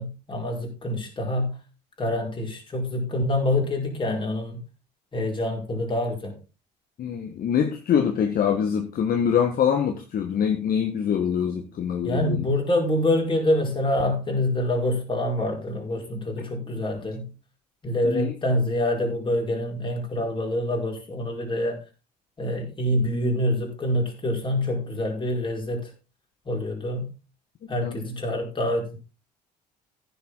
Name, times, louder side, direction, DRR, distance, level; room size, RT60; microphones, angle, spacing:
voice 1, 0.0-1.5 2.0-4.6 5.1-6.3 12.0-17.3 17.8-21.8 22.4-25.8 26.5-27.1 27.7-29.0, left 1 dB, 25° left, 1 dB, 4.9 m, -26 dB
voice 2, 7.0-12.4 18.0-18.3 27.8-28.0, left 8 dB, 45° left, 5 dB, 1.6 m, -24 dB
15.0 x 7.1 x 4.0 m, 0.32 s
figure-of-eight pair, 55°, 21 cm